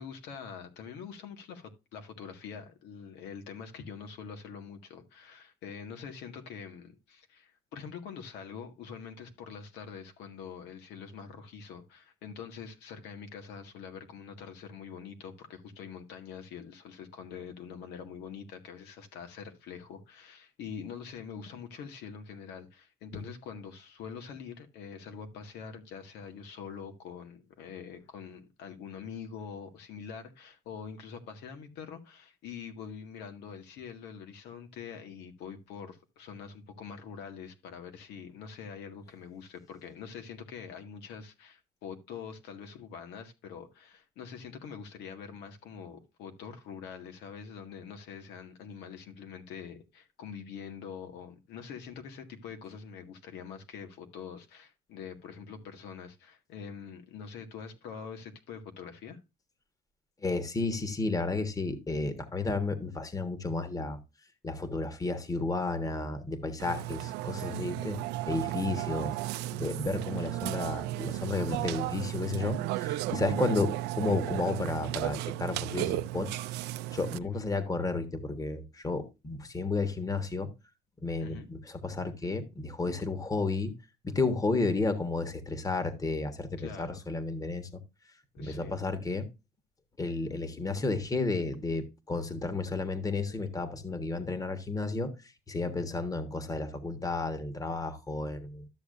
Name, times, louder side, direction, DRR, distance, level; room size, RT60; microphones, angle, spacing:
voice 1, 0.0-59.2 67.8-68.1 77.1-77.4 81.2-81.5 86.6-87.0 88.3-88.8, left 6 dB, 85° left, 1.9 m, -45 dB
voice 2, 60.2-64.0 64.4-68.0 68.3-69.2 69.5-76.4 76.9-80.5 81.0-83.7 84.0-87.8 88.4-89.3 90.0-98.7, left 3 dB, 20° left, 1.4 m, -32 dB
Burping eructation, 66.6-77.2, right 16 dB, 90° right, 0.5 m, -34 dB
12.5 x 6.8 x 2.5 m
cardioid pair, 110°, 17 cm